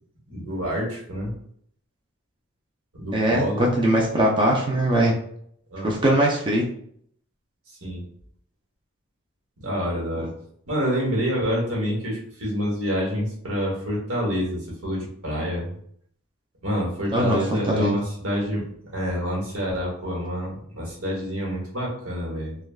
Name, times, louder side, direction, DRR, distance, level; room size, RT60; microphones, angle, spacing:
voice 1, 0.3-1.4 2.9-3.7 5.7-5.9 7.8-8.0 9.6-10.3 10.7-15.7 16.6-22.6, equal, 80° right, -3 dB, 1.2 m, -27 dB
voice 2, 3.1-5.1 5.8-6.6 17.1-17.4 17.7-18.0, right 1 dB, 25° right, -2 dB, 0.4 m, -21 dB
3.3 x 2.2 x 2.3 m, 0.66 s
head